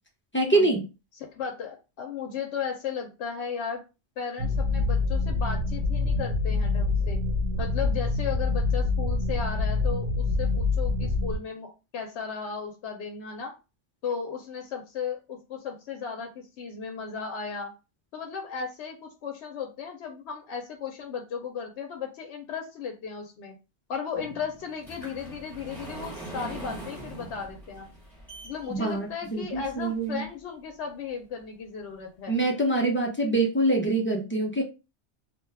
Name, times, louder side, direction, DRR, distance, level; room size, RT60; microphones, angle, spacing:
voice 1, 0.3-0.9 28.7-30.2 32.3-34.6, right 2 dB, 20° left, -1 dB, 0.3 m, -25 dB
voice 2, 1.3-3.8 4.2-7.2 7.6-13.5 14.0-17.7 18.1-23.6 23.9-27.9 28.4-32.4, left 6 dB, 70° left, 3 dB, 0.8 m, -35 dB
sound 1, 4.4-11.4, left 3 dB, 85° right, 1.0 m, -26 dB
sound 2, 24.1-30.3 30.9-31.0 31.5-31.6 31.9-32.0, right 1 dB, ahead, 1.1 m, -42 dB
2.5 x 2.2 x 3.3 m, 0.29 s
omnidirectional pair, 1.2 m